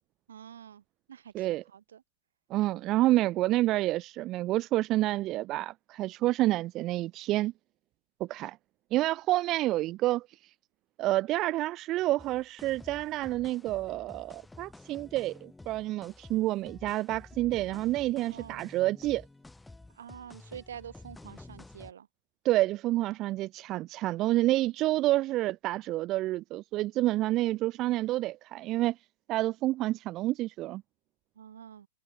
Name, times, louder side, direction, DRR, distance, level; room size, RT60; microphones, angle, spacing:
voice 1, 0.3-2.0 18.3-18.7 19.9-22.1 31.4-31.9, right 9 dB, 80° right, 5.3 m, -47 dB
voice 2, 2.5-7.5 8.2-8.6 8.9-10.3 11.0-19.2 22.4-29.0 29.3-30.8, right 16 dB, 30° right, 0.7 m, -28 dB
sound 1, 12.2-21.9, left 2 dB, 5° left, 4.4 m, -51 dB
hypercardioid pair, 140°, 0 cm